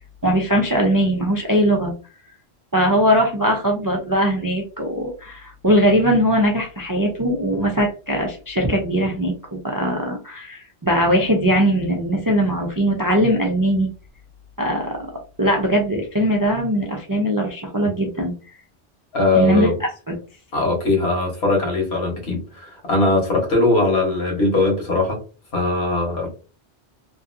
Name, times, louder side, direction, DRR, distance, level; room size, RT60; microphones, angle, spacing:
voice 1, 0.2-1.9 2.7-13.9 14.6-15.1 15.4-18.3 19.3-19.7 20.1-20.2, equal, 30° right, 0.3 m, -20 dB
voice 2, 19.1-19.7 20.5-25.2 25.5-26.3, left 2 dB, 70° left, 1.5 m, -20 dB
2.9 x 2.5 x 2.5 m
omnidirectional pair, 1.1 m